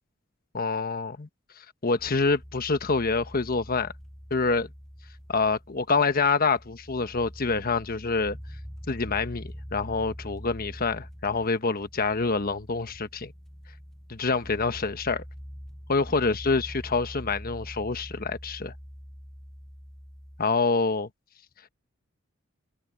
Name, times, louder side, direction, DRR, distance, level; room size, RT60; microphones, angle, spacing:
voice 1, 0.5-1.3 1.8-3.9 4.3-4.7 5.3-8.4 8.9-13.3 14.1-15.2 15.9-18.7 20.4-21.1, left 4 dB, 45° left, 1.2 m, -26 dB
sound 1, 2.0-20.4, equal, ahead, 0.7 m, -44 dB
open air
head